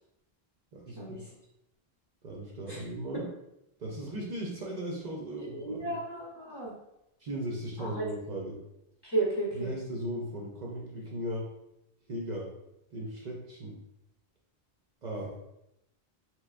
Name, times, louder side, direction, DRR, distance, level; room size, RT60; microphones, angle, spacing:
voice 1, 0.7-1.2 2.2-3.3 3.8-5.9 7.2-8.6 9.5-11.5 12.1-12.5 12.9-13.8 15.0-15.3, right 1 dB, 50° right, -2 dB, 0.6 m, -37 dB
voice 2, 5.2-6.7 7.8-8.0 9.0-9.7, right 2 dB, 25° left, -6 dB, 0.7 m, -33 dB
3.3 x 2.9 x 2.4 m, 0.86 s
omnidirectional pair, 1.0 m